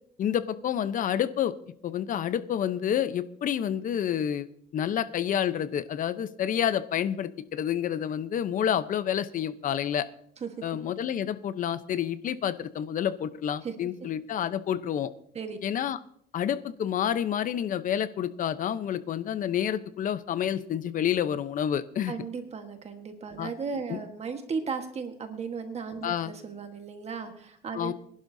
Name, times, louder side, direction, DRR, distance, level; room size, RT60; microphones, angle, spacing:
voice 1, 0.2-1.5 1.8-4.5 4.7-10.1 10.6-15.1 15.6-16.0 16.3-22.1 23.4-23.5 23.9-24.0 26.0-26.3 27.7-27.9, left 9 dB, 50° left, 13 dB, 0.8 m, -29 dB
voice 2, 22.1-27.9, right 5 dB, 40° right, 6 dB, 1.4 m, -36 dB
24.5 x 11.5 x 2.7 m, 0.66 s
cardioid pair, 110°, 17 cm